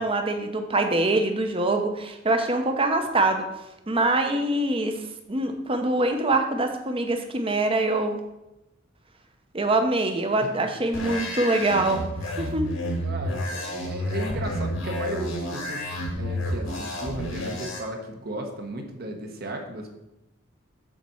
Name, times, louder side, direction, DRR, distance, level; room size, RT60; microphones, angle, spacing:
voice 1, 0.0-3.5 3.9-4.9 5.3-8.2 9.5-12.0 12.4-12.7, right 2 dB, 25° right, 6 dB, 0.8 m, -24 dB
sound 1, 10.9-17.8, left 1 dB, 85° left, 2.1 m, -30 dB
voice 2, 13.0-19.9, right 1 dB, 50° right, 3 dB, 1.1 m, -35 dB
7.3 x 4.2 x 6.3 m, 0.93 s
head